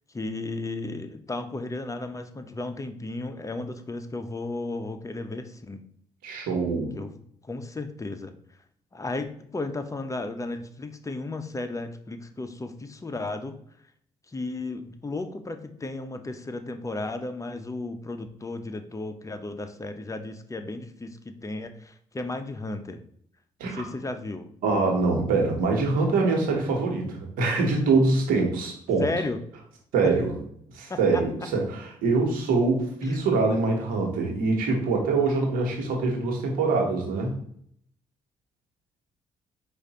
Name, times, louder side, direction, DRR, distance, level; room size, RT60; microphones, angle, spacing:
voice 1, 0.1-5.8 7.0-7.1 7.4-8.3 8.9-13.6 14.3-23.0 23.6-24.5 29.0-29.4 30.0-30.1 30.9-31.2 33.1-33.2, left 2 dB, 20° left, 7 dB, 0.7 m, -34 dB
voice 2, 6.2-6.9 23.6-23.8 24.6-29.1 29.9-30.3 30.7-37.3, right 3 dB, 80° right, 1 dB, 1.2 m, -24 dB
4.8 x 2.6 x 4.1 m, 0.65 s
supercardioid pair, 55°, 14 cm